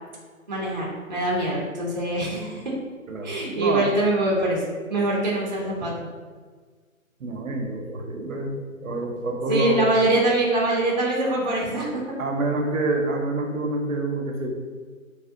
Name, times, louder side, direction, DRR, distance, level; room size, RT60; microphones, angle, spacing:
voice 1, 0.5-2.7 3.2-4.6 4.9-6.1 9.5-12.0, right 2 dB, 35° right, -4 dB, 0.4 m, -24 dB
voice 2, 3.1-3.9 7.2-8.5 8.8-9.8 12.2-14.5, right 2 dB, 75° right, 2 dB, 0.7 m, -27 dB
3.4 x 2.0 x 2.5 m, 1.5 s
figure-of-eight pair, 145°, 42 cm